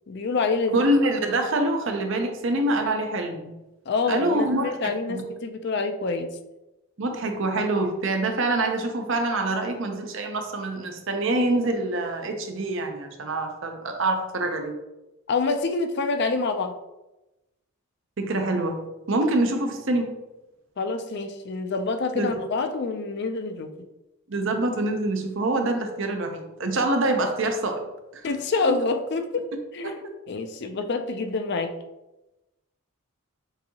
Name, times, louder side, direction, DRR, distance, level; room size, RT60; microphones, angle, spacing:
voice 1, 0.1-0.9 3.9-6.3 15.3-16.7 20.8-23.7 28.2-30.0 30.3-31.7, left 3 dB, 50° left, 7 dB, 0.4 m, -27 dB
voice 2, 0.7-3.5 4.1-4.8 5.1-5.2 7.0-14.7 18.2-18.8 19.1-20.1 22.1-22.4 24.3-27.9, right 2 dB, 60° right, 5 dB, 0.6 m, -25 dB
6.8 x 2.7 x 2.8 m, 0.99 s
head